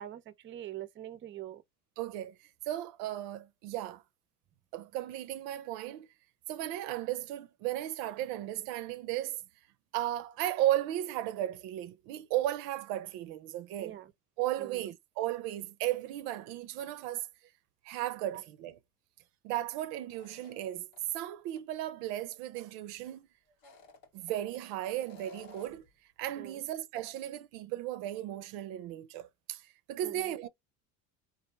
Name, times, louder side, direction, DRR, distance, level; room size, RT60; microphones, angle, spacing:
voice 1, 0.0-1.6 13.8-14.1 14.6-14.9 18.3-18.4 26.4-26.6 30.0-30.4, right 12 dB, 35° right, 0.6 m, -44 dB
voice 2, 2.0-2.4 2.7-4.0 4.7-6.1 6.5-9.4 9.9-14.0 14.4-17.3 17.8-18.8 19.4-23.3 24.1-25.8 26.2-30.5, right 13 dB, 80° right, 0.6 m, -35 dB
sound 1, 20.1-21.2 21.6-21.7 23.5-24.6 25.0-25.9, left 4 dB, 85° left, 1.4 m, -55 dB
4.0 x 2.6 x 3.1 m
supercardioid pair, 105°, 36 cm